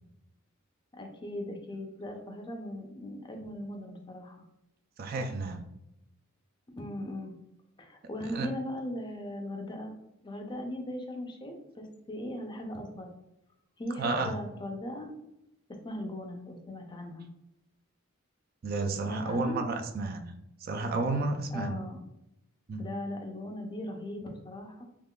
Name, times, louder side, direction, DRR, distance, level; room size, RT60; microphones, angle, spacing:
voice 1, 0.9-4.5 6.7-7.3 7.8-10.0 10.2-13.1 13.8-15.1 15.8-17.3 19.0-19.6 21.5-22.0 22.8-24.8, left 1 dB, 20° left, 3 dB, 0.4 m, -38 dB
voice 2, 5.0-5.6 8.3-8.5 14.0-14.3 18.6-20.3 20.6-21.8 22.7-22.8, right 3 dB, 45° right, 5 dB, 0.3 m, -31 dB
3.6 x 3.1 x 2.2 m, 0.86 s
head